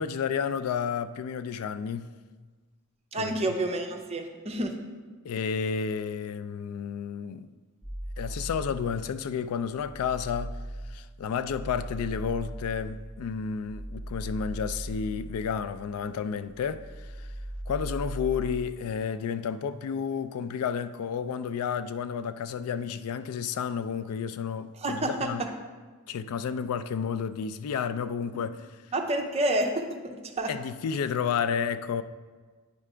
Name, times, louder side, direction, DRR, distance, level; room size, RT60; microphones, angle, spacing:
voice 1, 0.0-2.1 3.2-3.3 5.2-7.5 8.2-10.6 10.9-17.3 17.7-25.4 26.1-28.7 30.5-32.0, left 7 dB, 80° left, 0.3 m, -31 dB
voice 2, 3.1-4.7 24.8-25.5 28.9-30.5, right 1 dB, 30° right, 0.6 m, -29 dB
sound 1, 7.8-9.3 9.7-16.2 16.5-18.8, right 1 dB, 25° left, 1.4 m, -39 dB
9.4 x 3.3 x 4.9 m
head